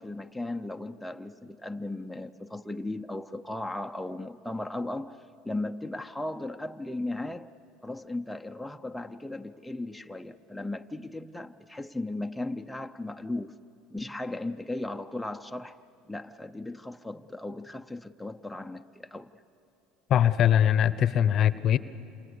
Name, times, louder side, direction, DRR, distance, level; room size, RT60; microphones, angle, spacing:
voice 1, 0.0-5.2 5.4-7.5 7.8-13.6 13.9-15.8 16.1-19.3, left 2 dB, 5° left, 0.7 m, -36 dB
voice 2, 20.1-21.8, left 10 dB, 50° left, 0.8 m, -22 dB
28.5 x 27.5 x 6.8 m
supercardioid pair, 85°, 0 cm